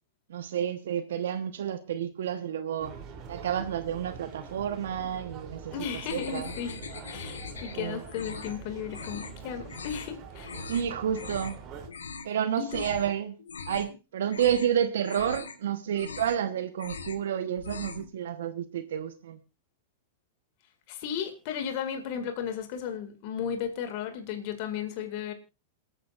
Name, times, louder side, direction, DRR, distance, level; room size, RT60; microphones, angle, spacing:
voice 1, 0.3-2.9 3.3-5.7 6.1-6.5 7.8-8.0 10.7-11.6 12.2-13.4 13.7-19.4, right 9 dB, 70° right, 1.1 m, -30 dB
sound 1, 2.8-11.9, right 5 dB, 35° right, 3.1 m, -45 dB
voice 2, 5.7-6.8 7.1-10.6 12.6-12.9 20.9-25.3, left 8 dB, 55° left, 2.1 m, -35 dB
sound 2, 6.1-7.8 8.1-8.6 8.9-9.3 9.7-10.1 10.4-10.8 11.1-11.6 11.9-12.3 12.7-13.1 13.4-14.0 14.3-14.7 15.0-15.6 15.9-16.4 16.7-17.2 17.5-18.1, left 5 dB, 85° left, 1.4 m, -41 dB
27.5 x 9.3 x 2.5 m
hypercardioid pair, 105°, 0 cm